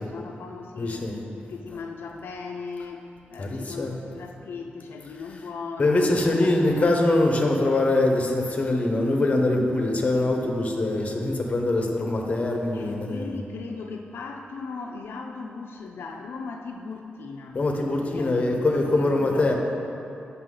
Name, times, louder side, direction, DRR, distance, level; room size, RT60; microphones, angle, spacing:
voice 1, 0.0-6.9 7.3-7.8 12.7-17.6 18.0-19.5, left 4 dB, 85° left, 2 dB, 0.4 m, -38 dB
voice 2, 0.8-1.2 3.4-3.9 5.8-13.3 17.5-19.5, left 2 dB, 35° left, 1 dB, 0.9 m, -23 dB
7.9 x 5.7 x 3.8 m, 2.8 s
wide cardioid pair, 105°, 4 cm